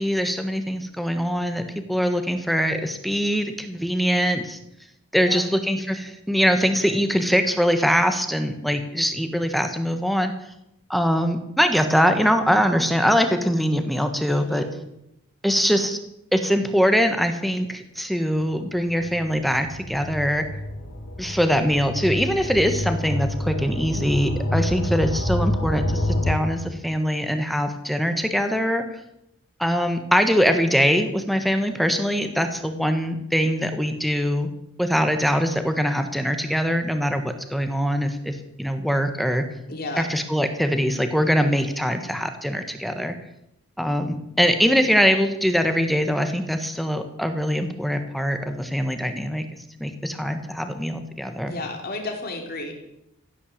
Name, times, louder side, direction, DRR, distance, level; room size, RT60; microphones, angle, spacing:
voice 1, 0.0-1.6 1.9-4.6 5.1-10.3 10.9-14.6 15.4-16.0 16.3-20.4 21.2-28.8 29.6-34.5 34.8-39.4 40.0-43.1 43.8-49.4 49.8-51.5, equal, ahead, 7 dB, 1.4 m, -22 dB
voice 2, 14.3-14.7 39.7-40.1 51.5-52.7, left 2 dB, 45° left, 3 dB, 3.3 m, -32 dB
sound 1, 19.0-26.4, left 1 dB, 80° left, 2.2 m, -27 dB
16.0 x 9.9 x 7.4 m, 0.82 s
head